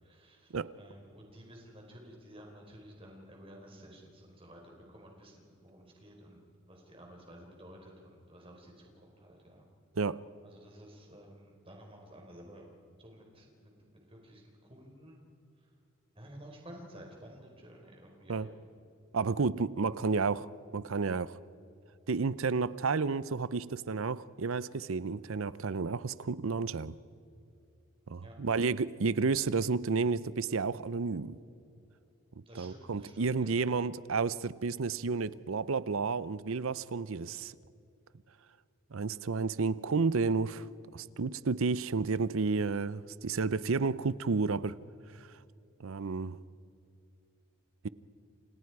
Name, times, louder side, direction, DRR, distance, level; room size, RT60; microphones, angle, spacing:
voice 1, 0.0-6.4 6.7-9.7 10.4-12.7 13.0-15.2 16.1-18.5 28.2-28.4 32.5-33.6, equal, 25° right, 4.5 m, -53 dB
voice 2, 19.1-20.5 20.7-21.4 22.1-27.0 28.1-31.4 32.6-37.5 38.9-40.7 40.9-44.8 45.8-46.4, right 4 dB, 70° right, 0.6 m, -31 dB
29.5 x 28.0 x 4.8 m
head